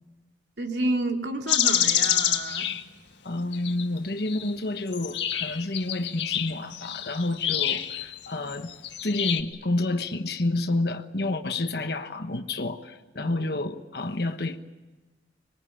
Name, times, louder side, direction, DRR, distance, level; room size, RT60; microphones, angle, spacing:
voice 1, 0.6-2.7 13.2-13.5, right 2 dB, 75° right, 2.6 m, -30 dB
sound 1, 1.5-2.8 3.5-3.9 4.3-4.5 4.9-9.4, left 11 dB, 85° left, 1.8 m, -27 dB
voice 2, 3.2-8.7 9.0-14.6, left 2 dB, 60° left, 1.2 m, -29 dB
26.0 x 21.5 x 8.9 m
head